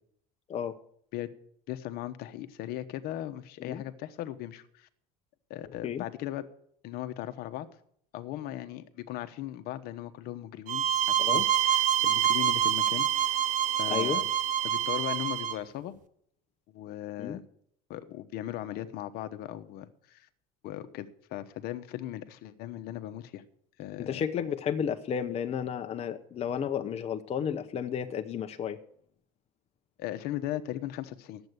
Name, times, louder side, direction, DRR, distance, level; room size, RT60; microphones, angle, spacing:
voice 1, 1.7-4.9 5.5-6.5 6.8-7.7 8.1-13.4 13.8-14.3 14.6-15.9 16.7-17.4 17.9-20.3 20.6-23.4 23.8-24.2 30.0-31.4, left 13 dB, 60° left, 10 dB, 1.0 m, -38 dB
sound 1, 10.7-15.6, right 10 dB, 45° right, 0.9 m, -26 dB
voice 2, 13.9-14.2 17.2-17.4 24.0-28.8, left 8 dB, 35° left, 6 dB, 0.8 m, -32 dB
10.5 x 8.0 x 8.1 m, 0.66 s
supercardioid pair, 105°, 18 cm